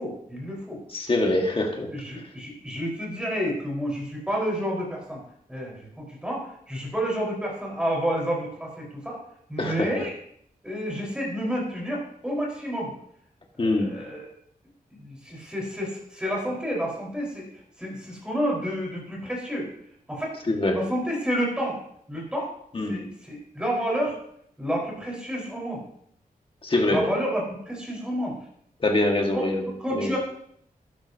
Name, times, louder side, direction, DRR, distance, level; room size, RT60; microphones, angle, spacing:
voice 1, 0.0-0.8 1.9-5.2 5.5-9.2 9.5-10.1 10.6-12.9 13.6-14.3 14.9-17.5 17.8-19.7 20.1-20.4 20.7-21.8 22.1-22.5 22.8-24.2 24.6-25.8 26.9-28.4 29.3-29.4 29.8-30.2, equal, 5° right, -3 dB, 4.5 m, -30 dB
voice 2, 0.9-1.9 9.6-9.9 13.6-14.0 20.5-20.9 22.7-23.0 26.6-27.1 28.8-29.7 29.9-30.1, left 2 dB, 35° left, 2 dB, 1.7 m, -24 dB
12.5 x 11.5 x 2.8 m, 0.69 s
wide cardioid pair, 150°, 15 cm